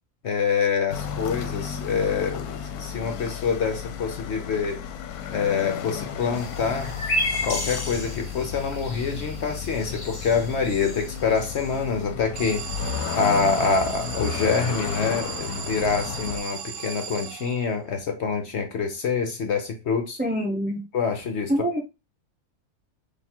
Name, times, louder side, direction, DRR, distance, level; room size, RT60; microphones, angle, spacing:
voice 1, 0.2-4.8 5.3-6.9 7.4-20.2 20.9-21.5, left 5 dB, 55° left, 0.8 m, -26 dB
sound 1, 0.9-16.4, left 8 dB, 75° left, 1.1 m, -33 dB
sound 2, 6.3-11.9, left 1 dB, 40° left, 1.3 m, -33 dB
Alarm, 12.4-17.9, right 7 dB, 70° right, 0.6 m, -36 dB
voice 2, 20.2-20.8 21.5-21.8, equal, 15° right, 0.3 m, -25 dB
3.6 x 2.7 x 4.3 m
omnidirectional pair, 1.6 m